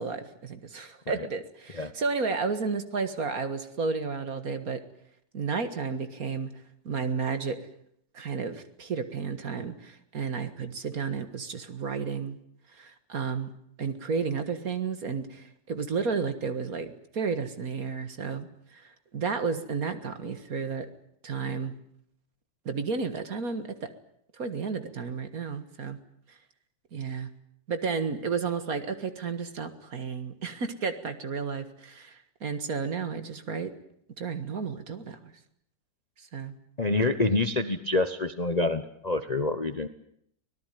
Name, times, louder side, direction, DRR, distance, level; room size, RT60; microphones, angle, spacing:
voice 1, 0.0-4.8 5.3-6.5 6.9-7.6 8.1-12.4 12.8-13.5 13.8-18.5 18.7-20.9 21.2-21.7 22.7-23.7 24.4-26.0 26.9-27.3 27.7-33.7 34.2-35.3 36.3-36.5, right 5 dB, 55° right, 9 dB, 2.1 m, -32 dB
voice 2, 36.8-39.9, left 2 dB, 30° left, 10 dB, 0.9 m, -27 dB
25.0 x 18.0 x 9.2 m, 0.72 s
omnidirectional pair, 1.9 m